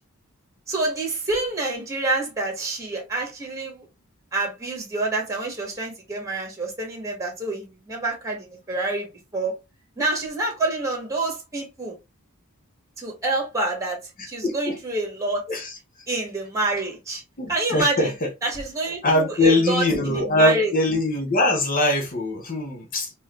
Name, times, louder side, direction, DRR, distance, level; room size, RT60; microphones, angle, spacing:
voice 1, 0.7-3.9 4.3-9.1 9.3-9.6 10.0-12.0 13.0-14.0 14.2-15.4 16.1-17.2 17.5-18.1 18.4-20.7, right 2 dB, 15° right, 1.5 m, -27 dB
voice 2, 14.4-14.8 15.5-15.8 17.4-18.3 19.0-23.1, left 1 dB, 40° left, 0.8 m, -22 dB
3.8 x 2.6 x 3.1 m
head